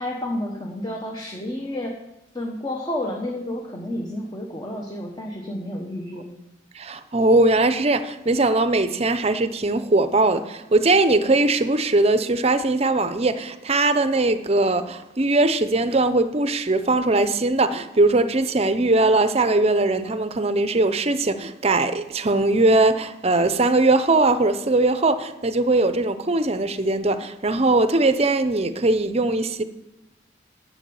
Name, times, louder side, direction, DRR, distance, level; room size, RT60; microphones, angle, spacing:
voice 1, 0.0-2.0 2.3-6.3, left 1 dB, 20° left, 1.1 m, -30 dB
voice 2, 6.7-29.6, right 2 dB, 35° right, 0.7 m, -20 dB
11.5 x 7.8 x 7.0 m
head